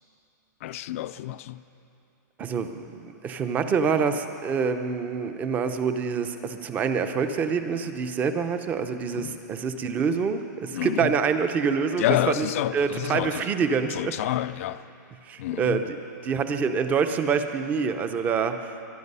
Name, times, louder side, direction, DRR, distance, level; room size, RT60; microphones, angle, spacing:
voice 1, 0.6-1.6 9.1-9.4 10.7-11.1 12.0-13.4 13.9-14.8 15.4-15.8, left 14 dB, 50° left, 0.4 m, -28 dB
voice 2, 2.4-14.1 15.3-16.0 16.2-18.8, right 6 dB, 15° right, 0.6 m, -26 dB
22.0 x 11.5 x 5.5 m
supercardioid pair, 165°, 10 cm